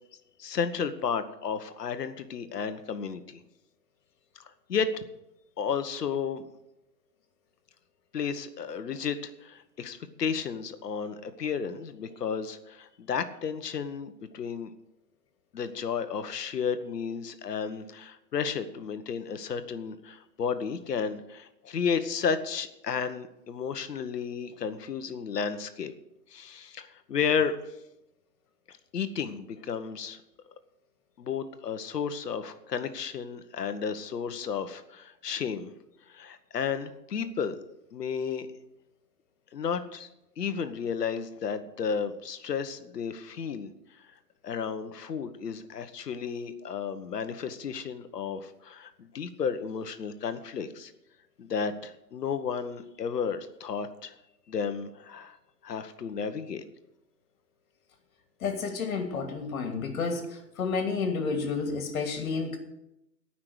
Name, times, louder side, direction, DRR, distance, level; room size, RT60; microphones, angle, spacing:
voice 1, 0.4-3.4 4.7-5.0 5.6-6.5 8.1-14.7 15.5-25.9 26.3-27.6 28.7-30.2 31.2-35.7 36.1-37.6 37.9-38.5 39.5-40.1 40.4-43.7 44.4-50.9 51.4-54.1 54.5-55.4 55.6-56.6, left 6 dB, 70° left, 10 dB, 1.3 m, -32 dB
voice 2, 58.4-60.2 60.6-62.6, left 4 dB, 55° left, 5 dB, 2.7 m, -30 dB
17.5 x 6.0 x 6.5 m, 0.88 s
hypercardioid pair, 150°, 50 cm